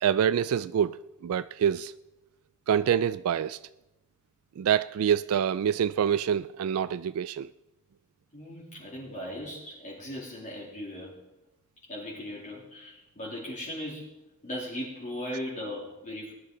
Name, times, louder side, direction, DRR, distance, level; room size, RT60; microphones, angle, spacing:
voice 1, 0.0-1.9 2.7-3.6 4.6-7.5, right 8 dB, 70° right, 0.3 m, -26 dB
voice 2, 8.3-11.2 11.9-14.1 14.4-16.4, left 1 dB, 35° left, 2.9 m, -38 dB
19.0 x 10.5 x 3.8 m
head